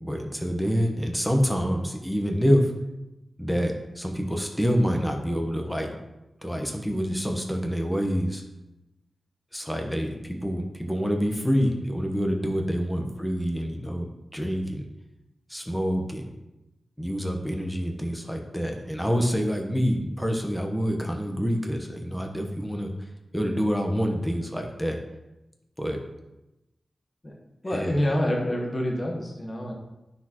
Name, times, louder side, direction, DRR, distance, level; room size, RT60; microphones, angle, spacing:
voice 1, 0.0-2.7 3.4-6.0 6.4-8.4 9.5-14.1 14.3-14.9 15.5-16.3 17.0-22.9 23.3-25.0 25.8-26.0 27.7-28.0, equal, 5° left, 2 dB, 1.0 m, -27 dB
voice 2, 27.6-29.7, left 1 dB, 25° left, 0 dB, 1.2 m, -27 dB
10.0 x 6.1 x 3.0 m, 0.96 s
wide cardioid pair, 105°, 0 cm